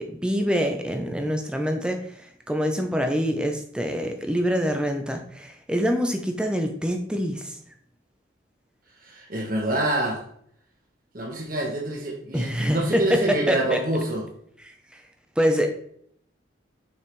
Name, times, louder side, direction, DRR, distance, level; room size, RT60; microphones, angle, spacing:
voice 1, 0.0-2.0 2.5-7.5 12.3-13.8 15.4-15.7, equal, 5° right, 4 dB, 0.8 m, -25 dB
voice 2, 9.0-10.2 11.1-14.3, right 1 dB, 45° right, -2 dB, 1.5 m, -27 dB
7.0 x 5.7 x 3.3 m, 0.66 s
head